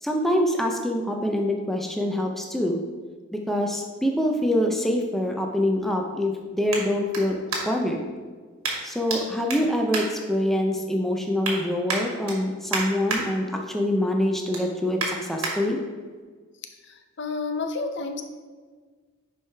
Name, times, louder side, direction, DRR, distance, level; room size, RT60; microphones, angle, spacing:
voice 1, 0.0-2.8 3.3-7.4 7.6-8.0 8.8-15.8, left 1 dB, ahead, 1 dB, 0.5 m, -25 dB
sound 1, 3.9-8.0 8.6-9.2 9.5-10.8 11.1-11.6 11.9-13.2 13.6-13.9 14.2-15.5 16.1-16.2, right 3 dB, 85° right, 1.9 m, -32 dB
voice 2, 16.9-18.2, left 4 dB, 55° left, 6 dB, 0.6 m, -30 dB
10.0 x 4.7 x 3.4 m, 1.5 s
head